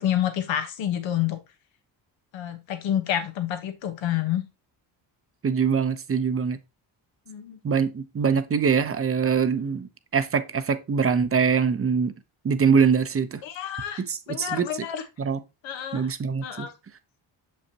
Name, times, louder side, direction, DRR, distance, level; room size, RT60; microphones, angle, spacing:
voice 1, 0.0-1.4 2.3-4.4 7.3-7.6 13.4-15.0 15.6-16.1 16.4-16.7, left 11 dB, 80° left, 1.2 m, -28 dB
voice 2, 5.4-6.6 7.6-12.1 12.4-13.4 14.0-14.6 15.2-15.4 15.9-16.7, right 6 dB, 30° right, 0.7 m, -23 dB
6.4 x 5.4 x 2.8 m
cardioid pair, 80°, 45 cm